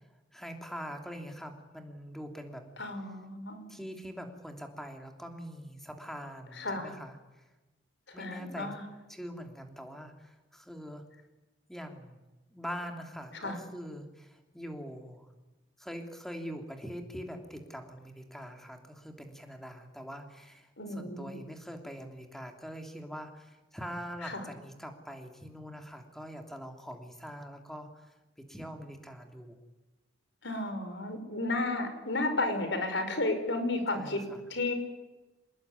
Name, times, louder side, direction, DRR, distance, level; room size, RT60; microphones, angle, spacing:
voice 1, 0.3-2.6 3.7-7.2 8.1-8.7 9.1-11.0 11.7-12.2 12.5-15.3 15.8-28.1 28.5-29.6 33.9-34.4, equal, ahead, 4 dB, 3.1 m, -43 dB
voice 2, 2.8-3.7 6.6-6.9 8.1-8.8 13.3-13.6 20.8-21.4 24.2-24.5 30.4-34.2 34.5-34.7, left 2 dB, 60° left, 8 dB, 5.3 m, -33 dB
27.0 x 20.5 x 9.7 m, 1.1 s
head